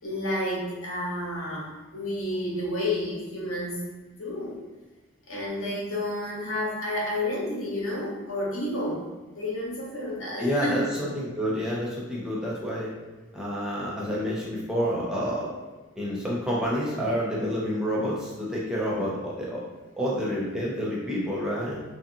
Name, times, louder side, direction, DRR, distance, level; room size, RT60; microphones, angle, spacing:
voice 1, 0.0-3.8 4.1-4.6 5.3-9.0 9.4-10.9, left 1 dB, 75° left, -4 dB, 0.9 m, -30 dB
voice 2, 10.4-12.9 13.3-15.5 16.0-19.6 20.0-21.8, equal, 5° right, -6 dB, 0.5 m, -28 dB
2.9 x 2.7 x 2.7 m, 1.2 s
head